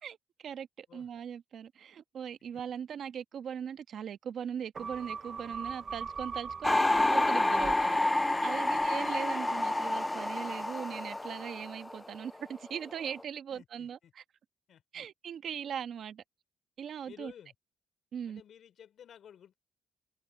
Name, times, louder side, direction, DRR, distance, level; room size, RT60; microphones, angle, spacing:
voice 1, 0.0-14.2 14.9-16.2 16.8-17.3 18.1-18.4, right 8 dB, 60° right, 1.3 m, -40 dB
sound 1, 4.7-9.4 9.8-9.9, right 5 dB, 40° right, 0.5 m, -42 dB
sound 2, 6.6-12.5 12.7-13.2, left 2 dB, 15° left, 0.4 m, -29 dB
voice 2, 13.5-14.1 14.7-15.1 17.0-17.5 18.3-19.6, left 9 dB, 65° left, 3.3 m, -54 dB
cardioid pair, 90°, 0 cm